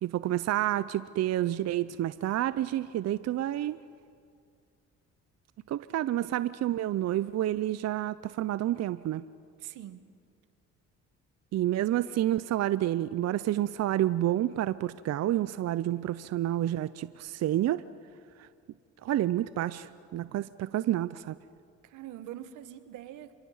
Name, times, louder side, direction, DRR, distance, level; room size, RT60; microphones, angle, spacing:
voice 1, 0.0-3.8 5.7-9.2 11.5-17.8 18.4-18.5 19.0-21.4, right 13 dB, 60° right, 15 dB, 0.5 m, -29 dB
voice 2, 9.6-10.0 21.8-23.3, right 12 dB, 85° right, 13 dB, 1.1 m, -43 dB
26.5 x 23.5 x 5.6 m, 2.3 s
cardioid pair, 90°, 30 cm